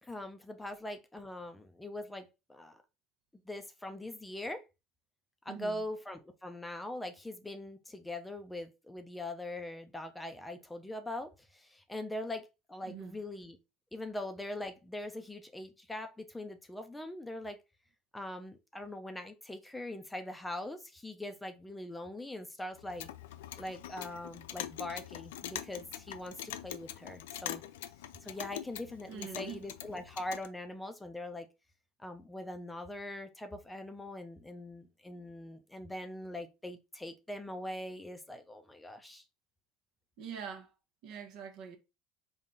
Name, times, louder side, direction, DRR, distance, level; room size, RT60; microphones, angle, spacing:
voice 1, 0.0-2.8 3.5-4.6 5.4-13.6 13.9-17.6 18.1-23.1 23.6-27.6 28.2-31.5 32.0-39.2, left 1 dB, 10° left, 0.5 m, -42 dB
voice 2, 5.5-5.8 12.8-13.2 29.1-29.6 40.2-40.7 41.0-41.8, right 7 dB, 60° right, 0.9 m, -44 dB
Clock, 22.8-30.5, left 12 dB, 85° left, 0.3 m, -44 dB
3.7 x 2.3 x 3.8 m
supercardioid pair, 105°, 0 cm